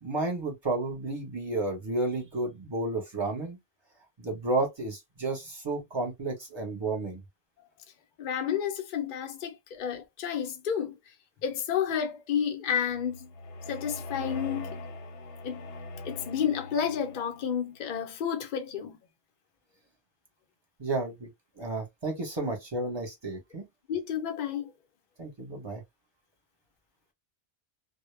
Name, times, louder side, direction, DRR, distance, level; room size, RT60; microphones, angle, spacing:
voice 1, 0.0-3.6 4.2-7.2 20.8-21.3 21.6-23.6 25.2-25.8, right 2 dB, 25° right, 0.9 m, -32 dB
voice 2, 8.2-11.0 11.4-13.3 13.7-14.7 15.4-15.6 16.0-19.0 23.9-24.7, left 8 dB, 55° left, 0.7 m, -31 dB
sound 1, 12.9-17.5, left 2 dB, 80° left, 0.9 m, -41 dB
2.1 x 2.1 x 3.2 m
omnidirectional pair, 1.2 m